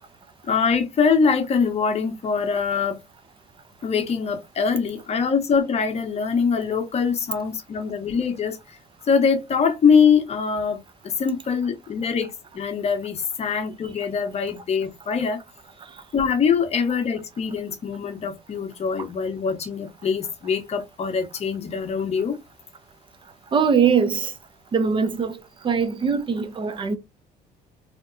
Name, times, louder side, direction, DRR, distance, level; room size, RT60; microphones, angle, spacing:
voice 1, 0.4-3.0 3.8-8.8 9.1-15.4 16.1-22.4, left 6 dB, 40° left, 0.7 m, -23 dB
voice 2, 23.5-24.3 24.7-25.4 25.6-27.0, right 6 dB, 30° right, 0.5 m, -21 dB
2.8 x 2.1 x 2.4 m
cardioid pair, 110°, 17 cm